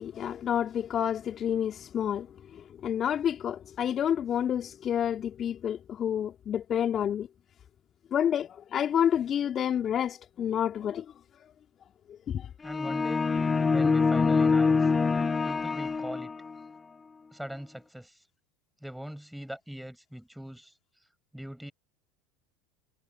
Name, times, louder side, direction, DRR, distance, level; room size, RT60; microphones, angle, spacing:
voice 1, 0.0-2.3 2.5-7.3 8.1-11.0 12.3-12.5, left 9 dB, 40° left, 2.7 m, -29 dB
sound 1, 12.6-16.6, left 4 dB, 20° left, 0.4 m, -25 dB
voice 2, 12.6-13.3 13.7-14.9 15.4-16.3 17.3-18.2 18.8-20.7 21.3-21.7, equal, ahead, 5.5 m, -40 dB
hypercardioid pair, 80°, 0 cm